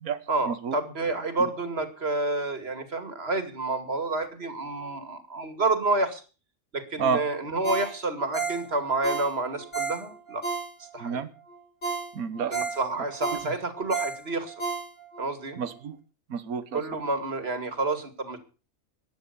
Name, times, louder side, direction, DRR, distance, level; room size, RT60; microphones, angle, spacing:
voice 1, 0.3-6.2 6.7-10.4 10.9-11.2 12.5-14.5 15.2-15.6 16.7-18.4, right 2 dB, 45° right, 9 dB, 2.6 m, -29 dB
Ringtone, 7.6-11.1 11.5-11.6 11.8-15.3 15.7-15.8, right 5 dB, 50° left, 5.5 m, -33 dB
voice 2, 12.1-12.6 15.6-16.0 16.3-16.8, right 6 dB, 75° right, 13 dB, 1.6 m, -29 dB
15.0 x 10.0 x 6.8 m, 0.36 s
omnidirectional pair, 1.5 m